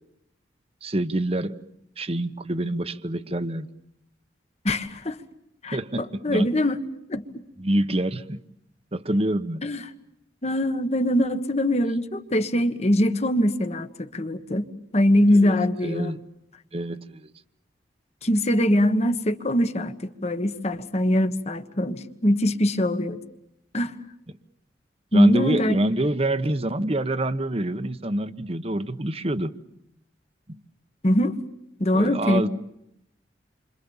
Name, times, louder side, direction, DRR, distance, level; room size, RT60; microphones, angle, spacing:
voice 1, 0.8-1.6 2.0-3.7 5.7-6.5 7.6-8.4 8.9-9.6 15.4-15.6 15.8-16.2 16.7-17.3 25.1-29.5 31.9-32.5, right 1 dB, 35° right, 11 dB, 1.1 m, -26 dB
voice 2, 4.6-5.2 5.6-6.8 7.1-7.2 9.6-9.8 10.4-14.7 14.9-16.1 18.2-23.2 23.7-23.9 25.1-25.8 31.0-31.4 31.8-32.5, left 1 dB, 35° left, 9 dB, 1.4 m, -22 dB
29.0 x 25.5 x 7.2 m, 0.79 s
head